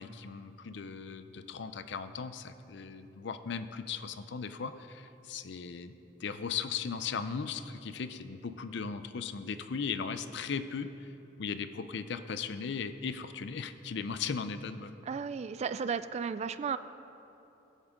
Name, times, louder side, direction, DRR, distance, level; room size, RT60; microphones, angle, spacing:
voice 1, 0.0-11.1 11.4-15.0, left 6 dB, 70° left, 11 dB, 0.5 m, -37 dB
voice 2, 15.1-16.8, right 6 dB, 35° right, 13 dB, 0.3 m, -34 dB
18.5 x 7.3 x 3.6 m, 3.0 s
head